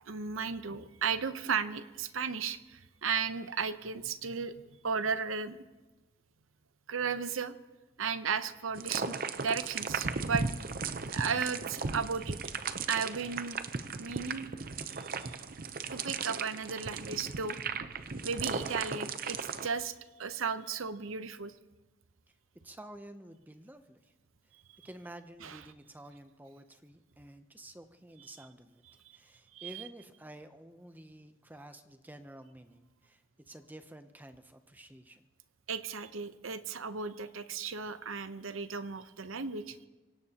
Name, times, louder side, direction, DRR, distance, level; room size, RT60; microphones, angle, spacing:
voice 1, 0.1-4.5 4.8-5.6 6.9-7.5 8.0-10.5 11.1-12.4 12.9-13.6 14.0-14.5 14.9-15.3 15.9-17.6 18.2-21.5 25.4-25.6 29.5-29.9 35.7-39.8, right 5 dB, 90° right, 11 dB, 0.8 m, -35 dB
sound 1, 8.8-19.7, right 4 dB, 45° right, 0.7 m, -36 dB
voice 2, 22.6-24.1 24.8-28.8 29.1-35.3, right 1 dB, 10° right, 8 dB, 0.6 m, -51 dB
25.0 x 17.5 x 2.9 m, 1.1 s
head